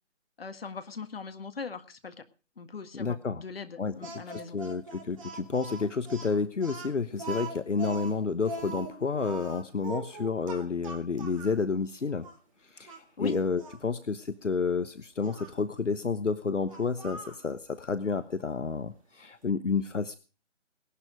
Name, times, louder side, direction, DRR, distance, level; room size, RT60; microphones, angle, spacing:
voice 1, 0.4-2.1 2.6-4.6 13.2-13.4, left 5 dB, 50° left, 10 dB, 1.8 m, -39 dB
voice 2, 2.9-3.4 3.8-12.3 12.6-20.2, left 4 dB, 75° left, 12 dB, 1.2 m, -30 dB
Speech, 4.0-11.6 12.2-12.4 12.9-13.8 15.2-15.5 16.7-17.4, right 2 dB, 25° right, 2.2 m, -41 dB
18.5 x 11.5 x 5.1 m, 0.36 s
figure-of-eight pair, 155°, 37 cm